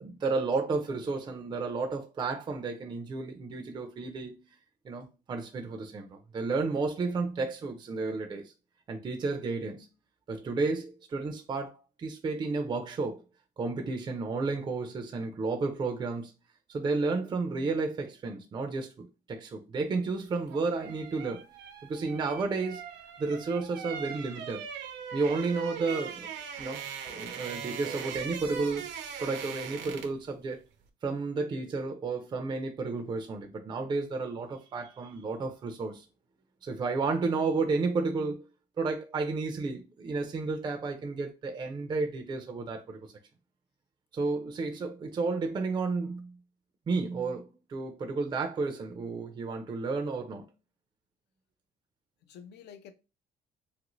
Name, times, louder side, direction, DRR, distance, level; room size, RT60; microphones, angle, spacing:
voice 1, 0.0-4.4 4.8-8.5 8.9-9.9 10.3-13.2 13.6-16.3 16.7-21.4 21.9-22.8 23.2-24.6 25.1-26.3 26.6-26.8 27.1-28.9 29.2-30.6 31.0-36.0 36.6-38.5 38.8-43.0 44.1-46.3 46.9-50.5, right 3 dB, 25° right, 0.4 m, -32 dB
sound 1, 20.3-30.3 30.5-30.8, right 7 dB, 75° right, 0.6 m, -40 dB
voice 2, 22.1-22.4 52.2-52.9, left 8 dB, 70° left, 0.5 m, -49 dB
2.9 x 2.5 x 3.0 m
cardioid pair, 145°, 18 cm